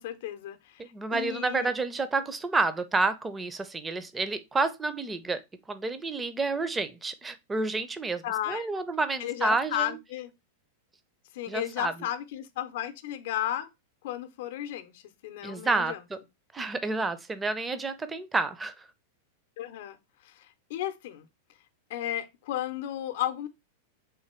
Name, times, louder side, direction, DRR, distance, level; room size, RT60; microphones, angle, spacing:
voice 1, 0.0-1.7 8.2-8.7 9.2-10.3 11.3-13.7 14.0-16.0 19.6-20.0 20.2-21.3 21.9-23.5, left 12 dB, 65° left, 0.6 m, -34 dB
voice 2, 0.8-5.4 5.7-10.0 11.5-11.9 15.4-16.2 16.5-18.9, right 3 dB, 15° right, 0.5 m, -29 dB
3.8 x 2.9 x 4.2 m
hypercardioid pair, 105°, 0 cm